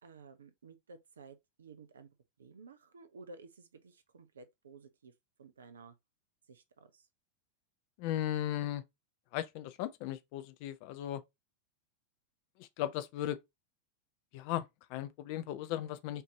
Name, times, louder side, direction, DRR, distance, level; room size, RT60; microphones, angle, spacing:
voice 1, 0.0-2.1 2.4-5.1 5.4-6.0 6.5-7.1, right 4 dB, 70° right, 0.7 m, -54 dB
voice 2, 8.0-8.8 9.3-11.2 12.6-13.4 14.3-16.2, left 12 dB, 45° left, 0.6 m, -36 dB
5.4 x 2.8 x 2.8 m
figure-of-eight pair, 90°, 0 cm